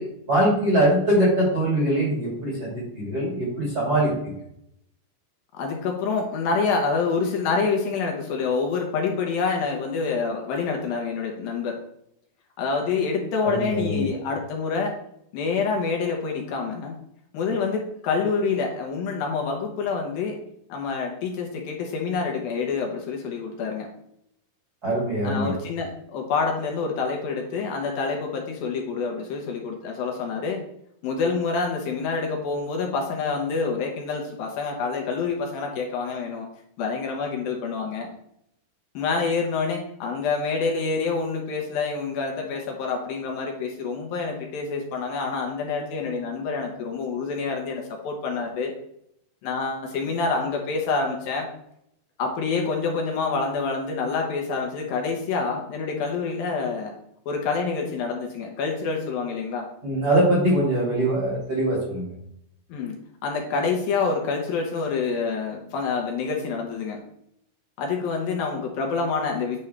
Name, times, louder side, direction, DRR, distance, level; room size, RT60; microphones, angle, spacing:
voice 1, 0.0-4.3 13.4-14.1 24.8-25.5 59.8-62.1, right 1 dB, 30° right, -4 dB, 2.0 m, -22 dB
voice 2, 5.5-11.8 12.6-15.0 15.3-17.0 17.3-20.4 20.7-23.9 25.2-30.6 31.0-36.5 36.8-38.1 38.9-48.7 49.4-51.5 52.2-56.9 57.3-59.6 62.7-63.0 63.2-67.0 67.8-69.6, left 4 dB, 70° left, 1 dB, 2.6 m, -27 dB
9.7 x 5.3 x 3.3 m, 0.75 s
omnidirectional pair, 4.6 m